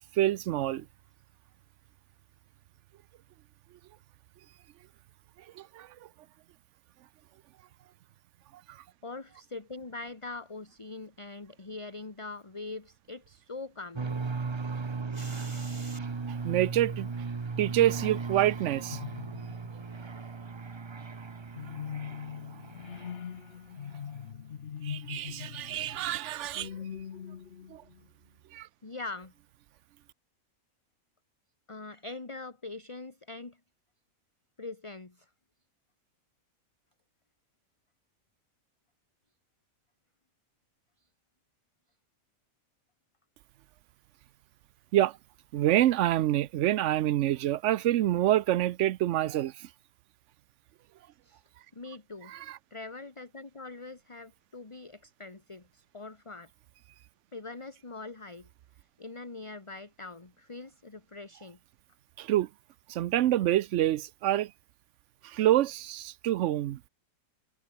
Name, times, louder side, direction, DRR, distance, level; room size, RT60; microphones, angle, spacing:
voice 1, 0.2-0.9 5.6-5.9 8.7-8.8 16.4-17.1 17.6-19.0 24.8-26.7 27.7-27.8 28.5-28.7 44.9-45.2 45.5-49.7 52.3-52.6 62.2-62.5 62.9-64.5 65.2-66.8, right 13 dB, 65° right, 0.8 m, -27 dB
voice 2, 9.0-14.2 15.1-16.0 28.8-29.3 31.7-33.6 34.6-35.3 51.2-51.4 51.7-52.4 52.7-56.5 57.3-58.5 59.0-61.6, left 3 dB, 20° left, 1.6 m, -43 dB
sound 1, 14.0-23.5, right 4 dB, 30° right, 0.6 m, -37 dB
sound 2, 18.9-20.0 21.6-28.0, left 8 dB, 50° left, 1.1 m, -41 dB
omnidirectional pair, 1.5 m